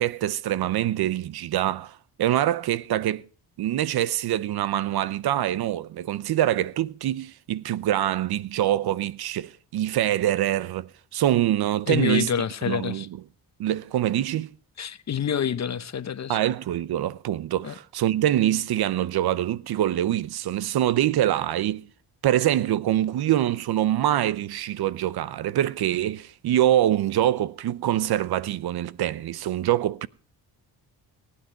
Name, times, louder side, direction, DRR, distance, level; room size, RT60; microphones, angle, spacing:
voice 1, 0.0-3.3 3.6-12.3 12.7-13.0 13.6-14.5 16.3-21.9 22.2-30.1, right 12 dB, 70° right, 0.7 m, -24 dB
voice 2, 11.9-13.1 14.8-16.4 17.6-17.7, left 8 dB, 45° left, 0.9 m, -27 dB
19.0 x 9.5 x 4.6 m
cardioid pair, 95°, 39 cm